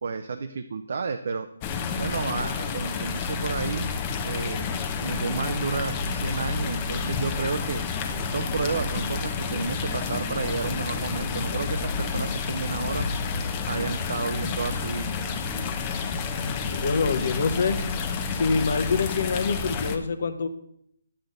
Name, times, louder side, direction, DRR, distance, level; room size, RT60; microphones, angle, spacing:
voice 1, 0.0-1.5 2.0-3.9 4.3-4.7 5.0-7.8 8.3-13.1 13.7-15.1, right 4 dB, 60° right, 7 dB, 0.6 m, -31 dB
sound 1, 1.6-20.0, left 5 dB, 20° left, 0.7 m, -30 dB
sound 2, 3.6-11.8, right 2 dB, 10° right, 0.8 m, -42 dB
voice 2, 16.4-17.8 18.3-20.5, left 4 dB, 55° left, 10 dB, 0.9 m, -26 dB
9.8 x 7.9 x 3.9 m, 0.72 s
hypercardioid pair, 160°, 0 cm